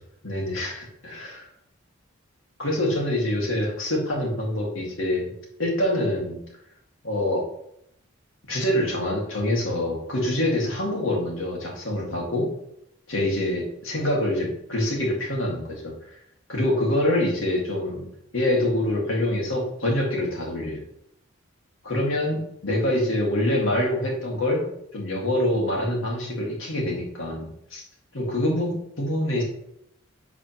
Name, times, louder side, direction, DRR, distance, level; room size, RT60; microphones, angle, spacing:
voice 1, 0.2-1.5 2.6-5.3 5.6-6.4 7.0-7.5 8.5-12.5 13.1-15.9 16.5-18.1 18.3-20.8 21.8-24.7 24.9-27.8 28.1-29.4, left 1 dB, 70° left, -2 dB, 2.0 m, -25 dB
10.5 x 4.1 x 3.0 m, 0.76 s
head